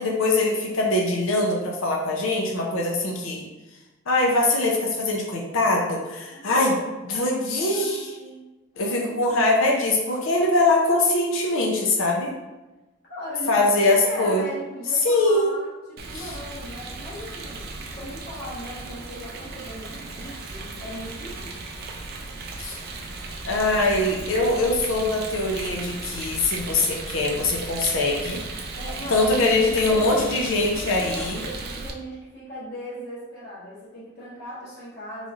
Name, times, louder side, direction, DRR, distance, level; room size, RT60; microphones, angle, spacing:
voice 1, 0.0-3.4 4.1-6.7 7.0-8.2 8.8-12.3 13.5-14.4 15.0-15.6 16.1-16.3 22.6-22.8 23.4-28.4 29.1-31.4, left 2 dB, 70° left, -1 dB, 0.5 m, -22 dB
voice 2, 6.3-8.5 8.7-9.6 13.1-21.6 28.7-35.3, equal, 45° left, -8 dB, 1.3 m, -38 dB
Rain, 16.0-31.9, right 3 dB, 45° right, 0.4 m, -36 dB
3.9 x 3.0 x 2.4 m, 1.1 s
head